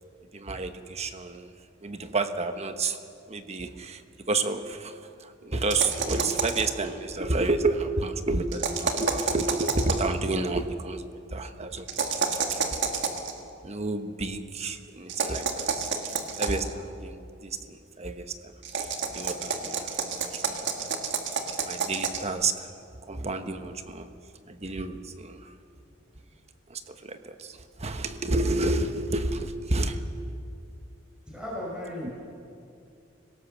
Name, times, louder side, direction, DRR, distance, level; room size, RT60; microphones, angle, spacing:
voice 1, 0.3-1.5 1.8-3.0 3.3-11.0 11.3-11.9 12.2-12.3 13.6-15.8 16.4-18.5 18.8-21.0 21.6-22.7 23.0-24.1 24.5-25.5 26.7-30.0, right 3 dB, 35° right, 8 dB, 1.1 m, -30 dB
sound 1, 5.7-6.8 8.5-10.1 11.9-13.3 15.1-16.7 18.6-22.3, right 5 dB, 65° right, 1.8 m, -29 dB
voice 2, 31.3-32.1, left 1 dB, 5° right, -5 dB, 5.6 m, -36 dB
25.5 x 17.5 x 6.8 m, 2.4 s
head